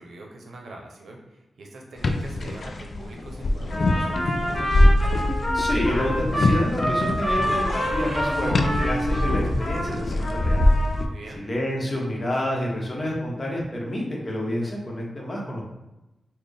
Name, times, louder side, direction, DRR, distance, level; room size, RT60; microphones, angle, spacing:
voice 1, 0.0-4.8 10.9-11.5, right 2 dB, 85° right, 0 dB, 0.6 m, -43 dB
sound 1, 2.0-11.1, left 1 dB, 55° left, 0.3 m, -23 dB
Trumpet, 3.7-9.9 10.2-11.0, equal, 10° left, 1.5 m, -28 dB
sound 2, 5.3-6.1 7.4-11.1, right 1 dB, 30° right, 0.6 m, -32 dB
voice 2, 5.5-10.7 11.4-15.7, left 1 dB, 30° left, -2 dB, 0.9 m, -29 dB
4.1 x 2.1 x 3.3 m, 0.99 s
wide cardioid pair, 125°, 0 cm